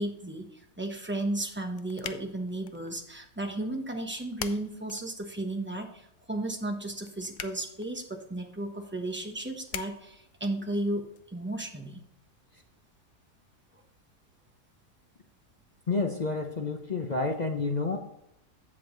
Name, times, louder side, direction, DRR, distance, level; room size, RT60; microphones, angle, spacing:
voice 1, 0.0-11.0 11.3-12.0, right 1 dB, 10° right, 3 dB, 0.8 m, -34 dB
sound 1, 1.2-11.2, left 10 dB, 70° left, 0.9 m, -47 dB
voice 2, 15.9-18.0, left 3 dB, 45° left, 3 dB, 0.6 m, -29 dB
7.7 x 7.6 x 3.8 m, 0.79 s
omnidirectional pair, 1.6 m